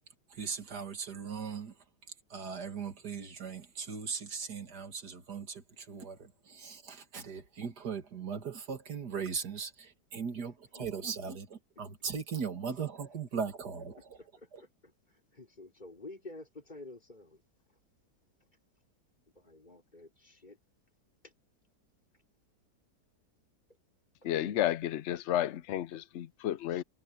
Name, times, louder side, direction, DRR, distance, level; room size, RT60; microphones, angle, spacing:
voice 1, 0.3-1.8 2.3-14.2 14.5-14.6, right 6 dB, 65° right, 2.5 m, -39 dB
voice 2, 14.1-17.4 19.3-20.6 21.2-21.3 25.9-26.0, left 2 dB, 25° left, 5.0 m, -50 dB
voice 3, 24.2-26.8, left 12 dB, 80° left, 0.6 m, -32 dB
omnidirectional pair, 1.9 m